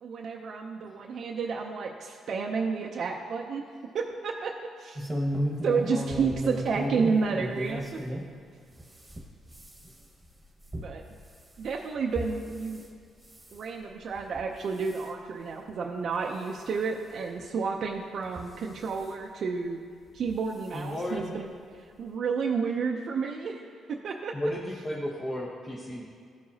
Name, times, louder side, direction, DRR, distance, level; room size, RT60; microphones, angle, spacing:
voice 1, 0.0-3.6 3.9-5.0 5.6-8.0 10.8-11.0 11.6-12.8 13.5-19.8 20.1-21.5 21.7-24.3, right 5 dB, 60° right, 0 dB, 0.5 m, -31 dB
sound 1, 5.0-8.3 8.7-12.9 13.2-13.6 14.2-14.5 14.8-15.1 15.7-15.8 16.1-16.2 17.4-17.5 18.2-19.1 20.2-20.4 20.7-20.8 21.2-21.3, equal, 15° right, 1.3 m, -34 dB
voice 2, 20.7-21.2 24.3-26.1, left 1 dB, 25° left, -3 dB, 0.8 m, -33 dB
13.0 x 4.8 x 2.7 m, 2.3 s
cardioid pair, 90°, 0 cm